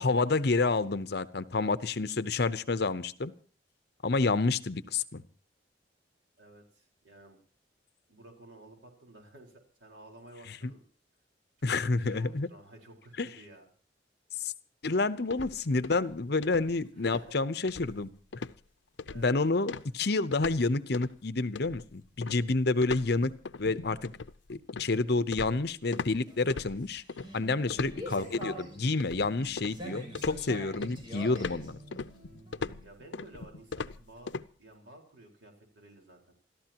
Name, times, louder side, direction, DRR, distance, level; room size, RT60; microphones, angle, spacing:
voice 1, 0.0-3.3 4.0-5.2 10.5-10.7 11.6-12.5 13.2-13.3 14.4-14.5 14.8-18.1 19.1-23.3 23.6-24.1 24.5-27.0 27.3-31.8, left 3 dB, 60° left, 14 dB, 0.9 m, -29 dB
voice 2, 6.4-7.4 8.1-10.8 11.6-13.7 16.9-17.4 19.0-19.4 27.7-28.0 32.8-34.3 34.6-36.2, right 2 dB, 85° right, 1 dB, 4.6 m, -53 dB
sound 1, 15.3-16.1 16.4-16.7 17.1-17.3 17.7-18.1 18.3-18.6 19.0-19.3 19.7-20.6 20.9-21.2 21.5-26.1 26.5-27.3 27.7-28.5 29.0-29.8 30.1-34.5, left 4 dB, 90° left, 0.6 m, -39 dB
sound 2, 26.0-32.8, equal, 25° right, 7.7 m, -45 dB
28.0 x 14.0 x 3.0 m, 0.42 s
head